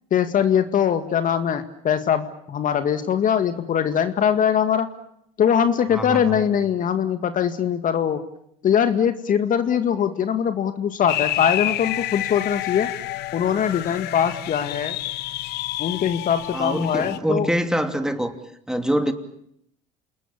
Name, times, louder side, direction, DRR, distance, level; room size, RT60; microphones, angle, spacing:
voice 1, 0.1-4.9 5.4-8.2 8.6-12.9 13.3-14.9 15.8-17.5, left 8 dB, 50° left, 9 dB, 2.0 m, -22 dB
voice 2, 5.9-6.4 16.5-18.3 18.7-19.1, equal, 5° right, 7 dB, 2.9 m, -24 dB
sound 1, 11.1-17.2, left 15 dB, 65° left, 1.1 m, -29 dB
28.5 x 20.5 x 8.6 m, 0.74 s
supercardioid pair, 85°, 18 cm